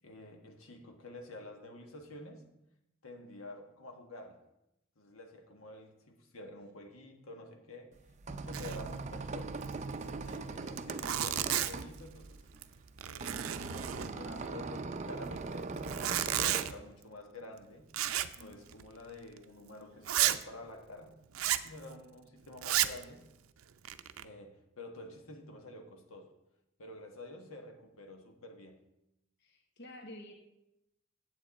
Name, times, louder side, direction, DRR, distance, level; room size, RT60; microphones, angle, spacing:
voice 1, 0.0-2.5 3.0-4.4 5.0-7.9 8.3-9.6 10.0-12.4 13.0-18.0 18.3-21.2 21.6-23.3 24.2-26.3 26.8-28.8, left 2 dB, 85° left, 3 dB, 1.4 m, -49 dB
sound 1, 8.0-16.7, right 3 dB, 35° right, 0.5 m, -41 dB
Zipper (clothing), 8.5-8.9 9.2-9.3 9.6-9.7 10.3-10.4 10.7-11.9 12.5-12.7 13.0-14.4 15.7-16.7 17.9-18.4 18.7-18.9 19.4-19.5 20.0-20.4 21.3-21.7 22.6-23.0 23.6-24.2, right 12 dB, 90° right, 0.5 m, -32 dB
voice 2, 29.4-30.3, left 1 dB, 55° left, 3 dB, 1.2 m, -49 dB
9.1 x 8.0 x 4.2 m, 0.86 s
head